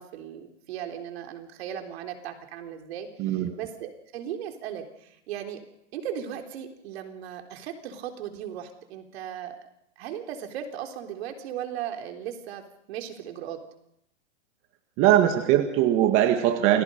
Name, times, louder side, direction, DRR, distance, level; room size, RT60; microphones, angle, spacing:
voice 1, 0.0-5.6 5.9-9.6 10.0-12.6 12.9-13.6, right 9 dB, 60° right, 4 dB, 3.8 m, -37 dB
voice 2, 3.2-3.5 15.0-16.8, right 12 dB, 35° right, 6 dB, 1.8 m, -21 dB
29.0 x 19.0 x 5.2 m, 0.77 s
hypercardioid pair, 145°, 36 cm